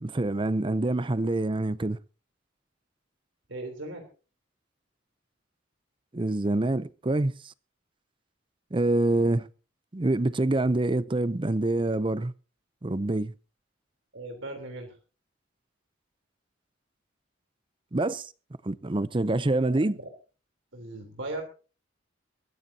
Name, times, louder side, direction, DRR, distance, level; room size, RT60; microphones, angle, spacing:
voice 1, 0.0-2.0 6.1-7.5 8.7-9.5 9.9-12.3 12.8-13.3 17.9-18.3 18.6-20.0, right 2 dB, 25° right, 0.6 m, -26 dB
voice 2, 3.5-4.1 14.1-14.9 19.7-20.0 20.7-21.4, right 2 dB, 80° right, 3.6 m, -38 dB
21.5 x 15.0 x 2.9 m
head